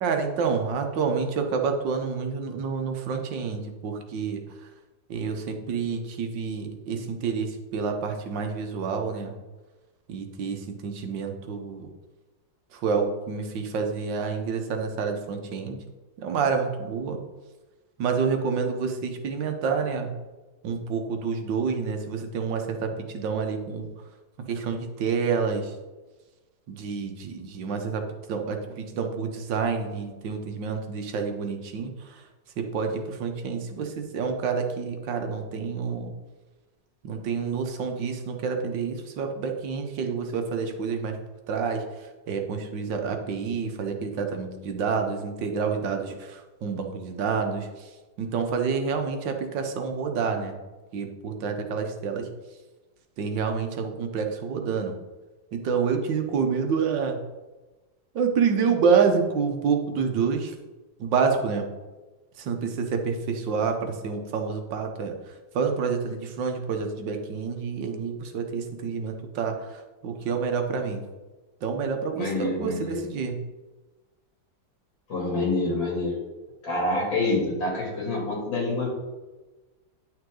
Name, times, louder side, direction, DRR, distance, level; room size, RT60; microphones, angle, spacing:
voice 1, 0.0-4.4 5.1-9.4 10.1-11.9 12.7-15.8 16.2-17.2 18.0-20.1 20.6-23.9 24.5-25.7 26.7-28.0 28.3-32.2 32.6-36.1 37.0-41.2 41.5-41.8 42.3-47.7 48.2-50.6 50.9-52.3 53.2-54.9 55.5-57.2 58.2-60.6 61.0-61.7 62.4-65.1 65.6-71.0 71.6-73.4, right 5 dB, 80° right, 5 dB, 1.7 m, -28 dB
voice 2, 72.2-73.0 75.1-76.2 76.6-78.9, left 2 dB, 85° left, -2 dB, 3.3 m, -27 dB
10.0 x 5.9 x 3.8 m, 1.2 s
omnidirectional pair, 2.0 m